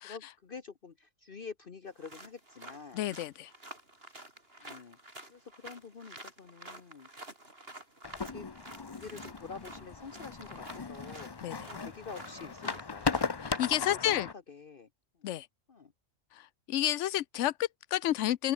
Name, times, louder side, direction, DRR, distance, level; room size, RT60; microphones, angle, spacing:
voice 1, 0.0-3.1 4.6-5.0 5.3-7.1 8.1-8.5 8.9-13.2 13.9-14.2 14.5-14.9 15.2-15.3 15.7-15.9, left 5 dB, 45° left, 1.3 m, -47 dB
sound 1, 1.9-13.7, right 1 dB, 50° right, 5.8 m, -50 dB
voice 2, 2.9-3.5 4.6-4.8 11.4-11.6 13.4-14.3 15.2-15.5 16.3-18.5, left 13 dB, 70° left, 0.9 m, -31 dB
sound 2, 8.0-14.3, left 4 dB, 30° left, 0.5 m, -37 dB
omnidirectional pair, 1.3 m